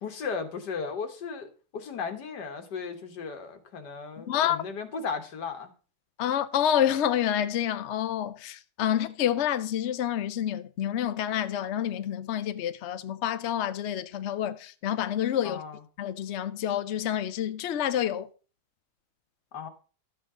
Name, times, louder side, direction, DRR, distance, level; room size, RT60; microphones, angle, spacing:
voice 1, 0.0-5.7 15.4-15.8 19.5-19.7, left 5 dB, 85° left, 1.9 m, -36 dB
voice 2, 4.2-4.6 6.2-15.6 16.0-18.3, left 10 dB, 60° left, 0.7 m, -28 dB
12.0 x 7.6 x 3.7 m
omnidirectional pair, 1.8 m